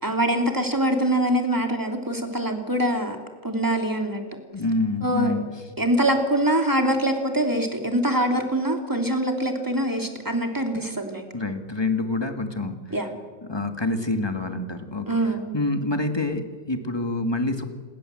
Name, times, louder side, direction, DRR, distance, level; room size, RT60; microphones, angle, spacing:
voice 1, 0.0-3.2 3.4-4.2 5.0-5.3 5.8-11.3 12.9-13.1 15.1-15.5, right 1 dB, 10° right, 4 dB, 3.2 m, -24 dB
voice 2, 4.5-5.4 11.3-13.0 13.5-15.2 15.5-17.6, left 2 dB, 15° left, 6 dB, 2.0 m, -27 dB
28.5 x 22.0 x 7.8 m, 1.6 s
omnidirectional pair, 2.0 m